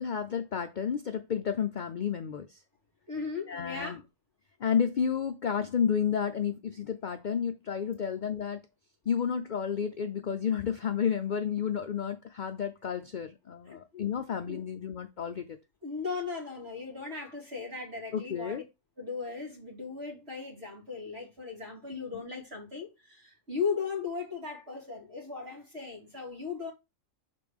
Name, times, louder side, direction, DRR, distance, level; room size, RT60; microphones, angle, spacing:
voice 1, 0.0-2.6 3.5-4.0 4.6-8.6 9.1-15.5 18.1-18.6 22.1-22.2, left 7 dB, 60° left, 0.5 m, -31 dB
voice 2, 3.1-4.0 13.7-14.0 14.4-14.6 15.8-18.6 19.0-26.7, left 5 dB, 50° right, 2.7 m, -37 dB
6.8 x 4.3 x 3.5 m
omnidirectional pair, 1.4 m